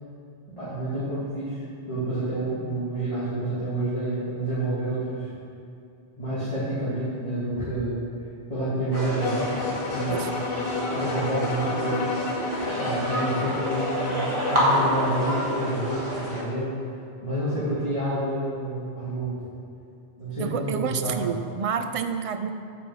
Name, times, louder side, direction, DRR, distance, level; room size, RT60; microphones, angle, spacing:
voice 1, 0.6-5.3 6.2-8.0 8.5-10.3 10.9-12.0 12.8-16.8 17.2-19.4 20.2-21.3, right 1 dB, 30° left, -12 dB, 2.7 m, -29 dB
sound 1, 8.9-16.4, equal, 25° right, 2.5 m, -28 dB
sound 2, 9.2-14.7, left 4 dB, 60° left, 0.8 m, -31 dB
voice 2, 20.4-22.5, right 7 dB, 50° right, 9 dB, 0.4 m, -29 dB
9.4 x 5.3 x 7.8 m, 2.6 s
omnidirectional pair, 1.1 m